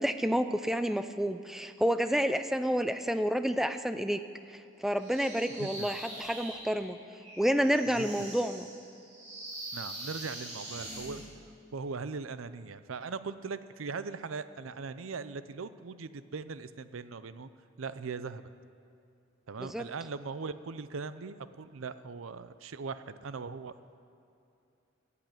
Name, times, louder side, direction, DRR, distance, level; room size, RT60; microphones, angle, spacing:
voice 1, 0.0-4.2 4.8-7.0 7.4-8.7 19.6-19.8, equal, ahead, 9 dB, 0.4 m, -29 dB
sound 1, 5.0-11.3, right 1 dB, 35° right, 3.6 m, -44 dB
voice 2, 5.6-5.9 8.0-8.3 9.7-11.2 11.7-17.5 17.8-18.4 19.5-23.7, right 4 dB, 85° right, 13 dB, 0.6 m, -40 dB
15.0 x 8.5 x 9.0 m, 2.6 s
head